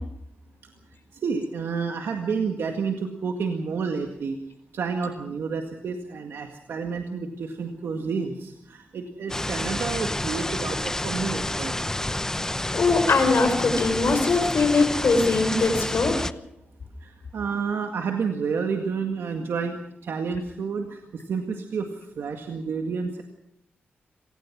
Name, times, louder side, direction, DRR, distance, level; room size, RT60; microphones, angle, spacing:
voice 1, 1.1-4.4 4.7-11.8 17.0-21.9 22.2-23.2, right 5 dB, 85° right, 4 dB, 1.9 m, -30 dB
sound 1, 9.3-16.3, left 1 dB, 15° left, 0.8 m, -29 dB
voice 2, 12.7-16.3, left 3 dB, 65° left, 6 dB, 4.3 m, -21 dB
26.0 x 18.5 x 6.2 m, 0.78 s
cardioid pair, 75°, 4 cm